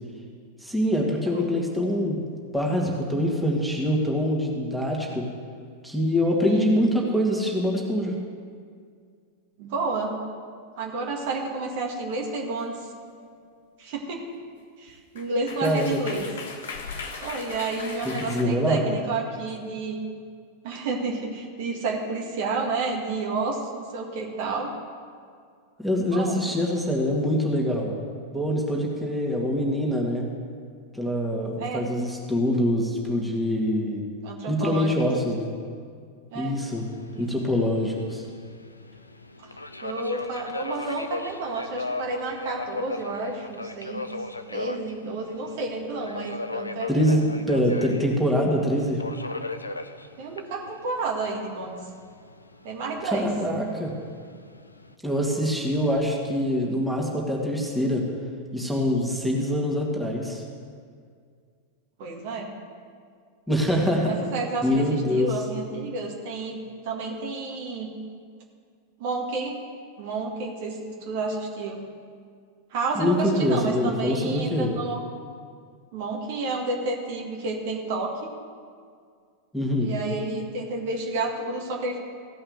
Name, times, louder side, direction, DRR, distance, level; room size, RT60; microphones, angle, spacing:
voice 1, 0.6-2.3 2.5-5.2 5.8-8.1 15.6-16.0 18.0-18.8 25.8-27.9 28.3-30.3 30.9-34.0 34.5-35.5 36.3-36.9 37.2-38.2 46.9-49.0 53.0-53.9 55.0-58.1 58.5-60.4 63.5-64.1 64.6-65.3 73.0-74.7 79.5-79.9, equal, ahead, -2 dB, 2.1 m, -24 dB
voice 2, 9.6-10.2 10.8-12.8 13.8-14.2 14.8-16.3 17.2-20.0 20.6-24.7 26.1-26.4 31.6-31.9 34.2-34.9 36.3-36.6 37.1-37.5 39.4-44.1 44.5-47.2 50.2-51.8 52.6-53.3 62.0-62.5 64.1-67.9 69.0-69.6 70.0-71.8 72.7-75.0 75.9-78.1 79.8-82.0, right 3 dB, 50° right, 0 dB, 1.8 m, -30 dB
sound 1, 13.1-13.4 14.9-15.0 15.2-18.4, left 4 dB, 60° left, 1.4 m, -38 dB
Subway metro underground, 36.5-54.9, left 2 dB, 80° left, 0.5 m, -38 dB
15.5 x 5.5 x 9.4 m, 2.1 s
figure-of-eight pair, 90°, 0 cm